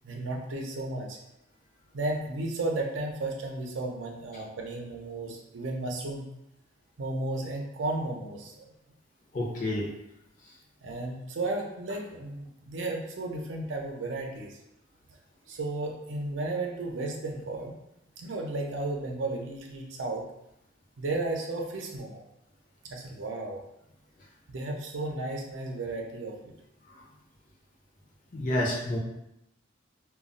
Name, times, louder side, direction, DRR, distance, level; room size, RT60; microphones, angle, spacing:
voice 1, 0.0-1.2 1.9-6.3 7.0-8.7 10.8-14.6 15.5-17.8 18.2-20.2 21.0-22.2 22.8-23.6 24.5-26.3, right 2 dB, 75° right, 1 dB, 0.5 m, -34 dB
voice 2, 9.3-9.9 26.9-27.0 28.3-29.0, left 1 dB, 45° left, -2 dB, 0.6 m, -29 dB
2.2 x 2.0 x 3.7 m, 0.84 s
head